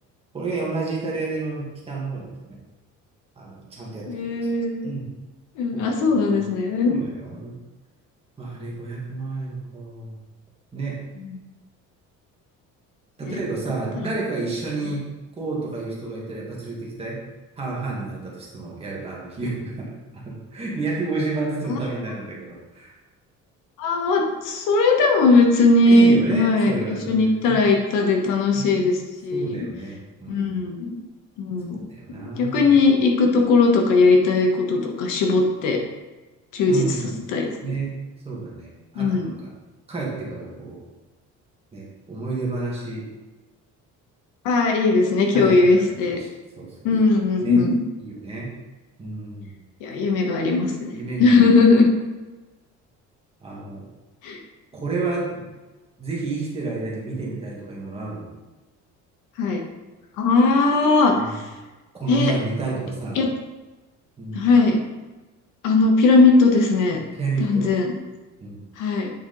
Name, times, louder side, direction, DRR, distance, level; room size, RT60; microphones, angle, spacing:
voice 1, 0.3-2.6 3.4-5.1 5.7-6.5 6.8-7.6 8.4-10.2 10.7-11.0 13.2-15.1 15.4-17.2 17.6-22.9 25.9-27.6 28.5-28.8 29.3-30.6 31.7-32.8 36.7-37.2 37.6-38.0 38.3-39.5 39.9-40.8 41.7-43.1 45.3-46.3 46.6-46.8 47.4-47.6 48.0-48.5 49.0-49.6 50.9-51.6 53.4-53.8 54.7-55.4 56.0-58.3 61.1-61.4 62.0-63.2 64.2-64.5 67.1-67.7 68.4-68.6, right 3 dB, 20° right, -5 dB, 1.9 m, -30 dB
voice 2, 4.1-5.0 5.6-7.0 11.2-11.3 13.3-13.4 21.7-21.8 23.8-29.0 29.2-29.7 30.3-30.9 31.4-31.8 32.2-35.8 36.5-36.8 37.3-37.7 38.9-39.2 44.4-46.2 46.8-47.8 49.8-50.9 51.2-51.9 54.2-54.4 59.4-59.6 60.2-61.4 62.1-62.3 63.1-63.3 64.3-64.8 65.6-67.0 67.4-67.9 68.8-69.1, left 3 dB, 80° left, 2 dB, 1.4 m, -19 dB
9.0 x 4.8 x 4.0 m, 1.2 s
cardioid pair, 170°, 31 cm